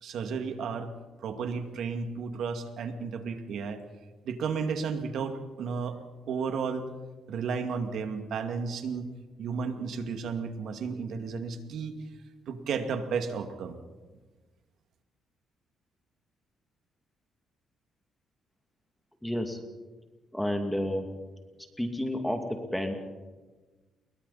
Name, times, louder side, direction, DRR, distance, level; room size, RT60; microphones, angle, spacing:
voice 1, 0.0-0.9 1.2-3.8 4.2-6.0 6.3-6.9 7.3-9.1 9.4-12.0 12.5-13.8, right 5 dB, 70° right, 6 dB, 2.3 m, -33 dB
voice 2, 19.2-19.6 20.3-21.1 21.8-22.9, left 1 dB, 5° left, 4 dB, 2.5 m, -30 dB
29.0 x 22.5 x 4.3 m, 1.3 s
cardioid pair, 90°, 0 cm